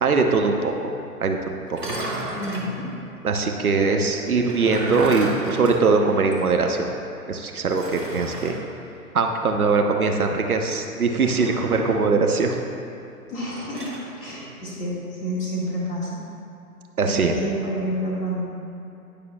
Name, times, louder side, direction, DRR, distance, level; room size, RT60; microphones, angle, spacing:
voice 1, 0.0-0.9 1.2-1.4 1.7-2.0 3.2-8.5 9.1-12.5 17.0-17.4, right 4 dB, 65° right, 3 dB, 0.9 m, -21 dB
sound 1, 1.7-2.7 4.3-6.5 6.8-6.9 7.7-8.6 11.1-12.1 13.4-14.1, right 1 dB, 85° right, 1.8 m, -33 dB
voice 2, 2.3-2.9 13.3-13.9 14.2-16.2 17.0-18.4, equal, 15° left, -7 dB, 2.0 m, -29 dB
18.5 x 6.8 x 2.3 m, 2.8 s
figure-of-eight pair, 120°, 46 cm